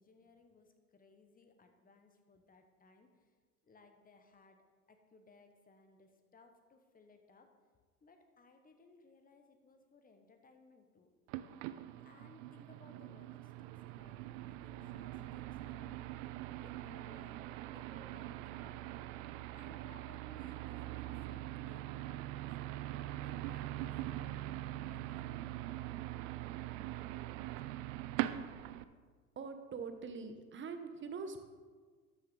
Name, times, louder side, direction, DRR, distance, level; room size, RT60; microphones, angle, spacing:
voice 1, 0.0-3.3 3.6-7.5 8.0-11.1 12.0-16.0 16.6-17.4 17.7-19.0 19.5-22.5 22.9-26.0, left 3 dB, 20° left, 6 dB, 1.1 m, -63 dB
sound 1, 11.3-28.8, right 14 dB, 55° right, 0.6 m, -42 dB
voice 2, 29.4-31.4, right 5 dB, 25° right, 7 dB, 1.0 m, -43 dB
13.0 x 6.4 x 3.8 m, 1.5 s
hypercardioid pair, 80°, 47 cm